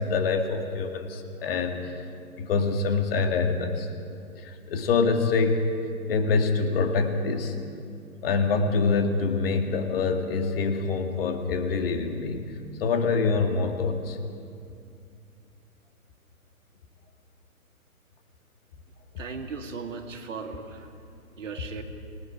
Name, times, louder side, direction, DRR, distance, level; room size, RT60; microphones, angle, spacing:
voice 1, 0.0-2.1 2.4-3.9 4.4-5.8 6.1-7.5 8.2-12.4 12.8-14.2, left 4 dB, 40° left, 6 dB, 2.0 m, -25 dB
voice 2, 19.2-20.9 21.4-21.8, right 5 dB, 55° right, 5 dB, 2.1 m, -37 dB
27.5 x 19.5 x 4.9 m, 2.4 s
figure-of-eight pair, 125°, 44 cm